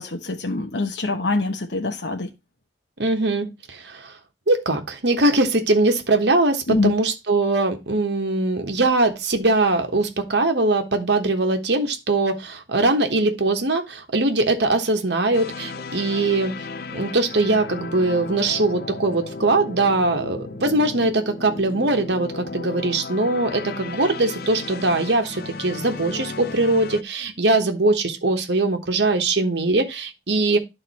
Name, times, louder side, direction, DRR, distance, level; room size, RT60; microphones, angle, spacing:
voice 1, 0.0-2.3 6.7-6.9, left 2 dB, 75° left, 1.0 m, -24 dB
voice 2, 3.0-4.1 4.5-16.5 16.9-30.6, right 2 dB, 70° right, 1.3 m, -21 dB
sound 1, 15.3-27.0, left 3 dB, 55° left, 0.6 m, -35 dB
11.5 x 3.8 x 4.2 m
head